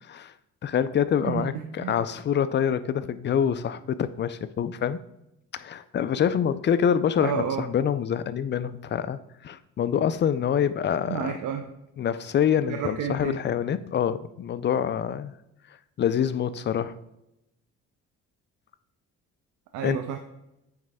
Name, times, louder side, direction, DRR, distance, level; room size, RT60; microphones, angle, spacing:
voice 1, 0.0-0.3 0.6-5.0 5.5-11.3 12.0-15.3 16.0-17.0 19.8-20.0, left 8 dB, 40° left, 14 dB, 0.4 m, -26 dB
voice 2, 1.2-2.0 7.2-7.6 11.1-11.6 12.7-13.4 19.7-20.2, right 7 dB, 75° right, 4 dB, 0.6 m, -30 dB
9.0 x 3.2 x 3.5 m, 0.86 s
cardioid pair, 90°, 30 cm